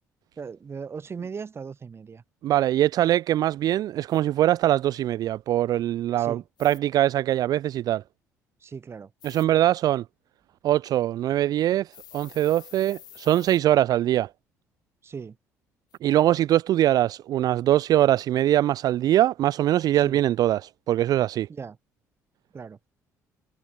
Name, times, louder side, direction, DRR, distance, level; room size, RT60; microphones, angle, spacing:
voice 1, 0.4-2.2 6.1-6.4 8.6-9.1 15.0-15.4 19.9-20.2 21.5-21.8 22.5-22.8, right 5 dB, 30° right, 0.8 m, -38 dB
voice 2, 2.4-8.0 9.2-10.0 10.6-14.3 16.0-21.5, right 13 dB, 50° right, 0.4 m, -22 dB
sound 1, 4.1-4.2 6.6-6.8 9.2-9.4 11.9-13.6 15.9-16.0, left 12 dB, 50° left, 2.1 m, -48 dB
figure-of-eight pair, 50°, 9 cm